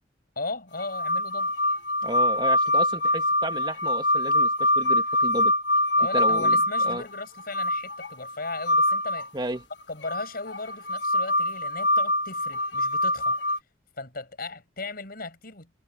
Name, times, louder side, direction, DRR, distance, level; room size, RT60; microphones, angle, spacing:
voice 1, 0.4-1.5 6.0-9.3 9.9-13.4 14.0-15.7, left 3 dB, 55° left, 7.0 m, -37 dB
sound 1, 0.8-9.3 10.1-13.6, left 1 dB, 75° left, 1.4 m, -24 dB
voice 2, 2.0-5.5 6.1-7.0 9.3-9.6, right 1 dB, 25° right, 2.5 m, -33 dB
head